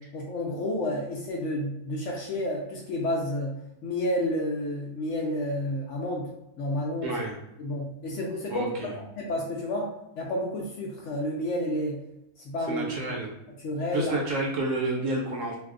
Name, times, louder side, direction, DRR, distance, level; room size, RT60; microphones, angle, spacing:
voice 1, 0.0-3.6 3.8-6.3 6.6-7.2 7.6-8.7 9.2-12.0 12.4-12.9 13.6-14.1, left 1 dB, 65° left, -1 dB, 0.8 m, -30 dB
voice 2, 7.0-7.3 8.5-9.0 12.7-13.3 13.9-15.6, right 2 dB, 65° right, 0 dB, 0.9 m, -29 dB
2.6 x 2.3 x 3.6 m, 0.86 s
omnidirectional pair, 1.6 m